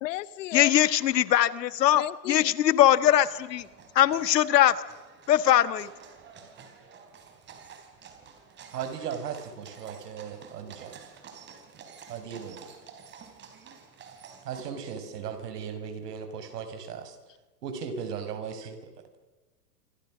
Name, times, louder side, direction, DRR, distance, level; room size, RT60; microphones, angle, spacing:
voice 1, 0.0-0.7 1.9-2.5, left 16 dB, 50° left, 19 dB, 0.9 m, -34 dB
voice 2, 0.5-3.7 3.9-4.8 5.3-5.9, left 12 dB, 85° left, 14 dB, 1.6 m, -21 dB
sound 1, 2.9-14.7, right 6 dB, 20° right, 3.9 m, -50 dB
voice 3, 8.7-11.0 12.1-12.7 14.4-17.2 17.6-18.8, right 7 dB, 70° right, 8 dB, 5.6 m, -37 dB
27.5 x 26.5 x 6.3 m, 1.2 s
hypercardioid pair, 145°, 48 cm